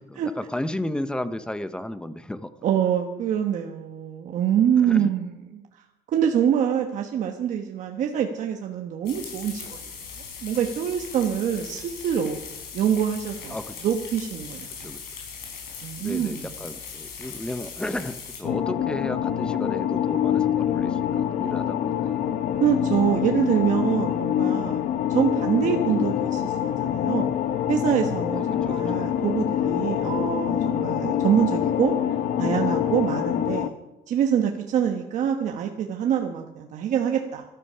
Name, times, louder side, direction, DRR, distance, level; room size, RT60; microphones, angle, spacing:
voice 1, 0.1-2.5 4.8-5.1 13.5-13.7 14.8-15.0 16.0-22.3 28.3-28.8, left 1 dB, 5° left, 12 dB, 0.5 m, -33 dB
voice 2, 2.6-5.6 6.1-9.8 10.4-12.4 12.7-13.6 13.8-14.9 15.8-16.4 22.6-24.8 25.1-27.3 27.7-31.9 32.4-33.7 34.1-37.4, right 8 dB, 50° right, 3 dB, 1.1 m, -25 dB
sound 1, 9.1-18.4, left 6 dB, 75° left, 5.3 m, -39 dB
sound 2, 18.4-33.7, left 10 dB, 50° left, 0.8 m, -25 dB
13.5 x 13.0 x 5.6 m, 0.98 s
cardioid pair, 165°, 16 cm